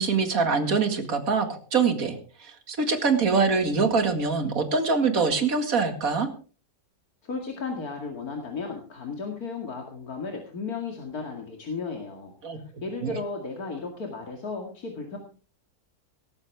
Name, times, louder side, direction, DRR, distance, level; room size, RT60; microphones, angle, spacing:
voice 1, 0.0-6.3 12.4-12.6 13.0-13.1, right 4 dB, 70° right, 7 dB, 2.5 m, -24 dB
voice 2, 7.2-12.3 12.8-15.2, left 4 dB, 90° left, 2 dB, 2.7 m, -34 dB
18.0 x 14.0 x 3.5 m, 0.38 s
omnidirectional pair, 1.5 m